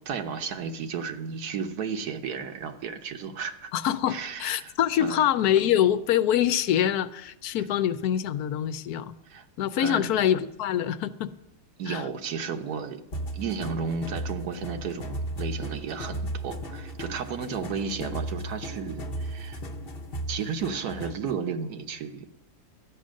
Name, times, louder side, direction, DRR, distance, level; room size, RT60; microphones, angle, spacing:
voice 1, 0.1-3.7 4.1-4.7 5.0-5.2 9.3-9.4 9.8-10.1 11.8-13.0 13.3-19.6 20.3-22.3, right 6 dB, 80° right, 7 dB, 1.5 m, -33 dB
voice 2, 3.7-9.1 9.6-11.3 11.9-12.0, left 10 dB, 80° left, 13 dB, 1.1 m, -25 dB
sound 1, 13.1-21.3, right 1 dB, 45° left, 1.0 m, -35 dB
12.5 x 9.5 x 6.3 m, 0.86 s
omnidirectional pair, 1.6 m